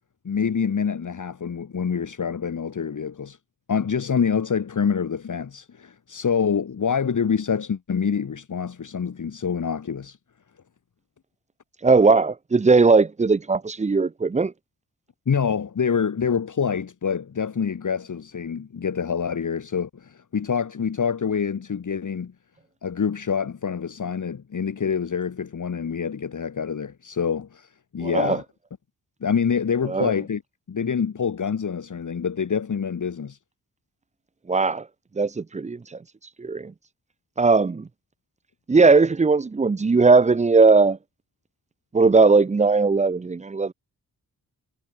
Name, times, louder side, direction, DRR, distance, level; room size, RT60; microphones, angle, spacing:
voice 1, 0.3-3.4 3.7-10.2 15.3-22.3 22.8-28.4 29.2-30.4 30.7-33.4, left 6 dB, 55° left, 1.8 m, -26 dB
voice 2, 11.8-14.5 28.0-28.4 29.9-30.1 34.5-34.8 35.2-36.0 36.4-36.7 37.4-37.9 38.7-41.0 41.9-43.7, right 4 dB, 20° right, 0.5 m, -18 dB
wide cardioid pair, 110°, 36 cm